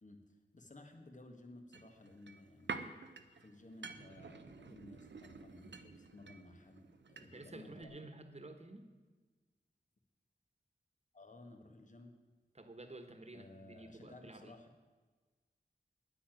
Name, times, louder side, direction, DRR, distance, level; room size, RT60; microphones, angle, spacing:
voice 1, 0.0-2.9 3.4-8.1 11.1-12.2 13.3-14.7, left 2 dB, 45° left, 5 dB, 1.8 m, -56 dB
sound 1, 1.7-7.5 7.8-7.9, right 4 dB, 85° right, 0.9 m, -49 dB
voice 2, 7.2-8.9 12.5-14.5, right 2 dB, 35° right, 8 dB, 1.5 m, -51 dB
10.0 x 9.7 x 9.2 m, 1.3 s
wide cardioid pair, 75°, 18 cm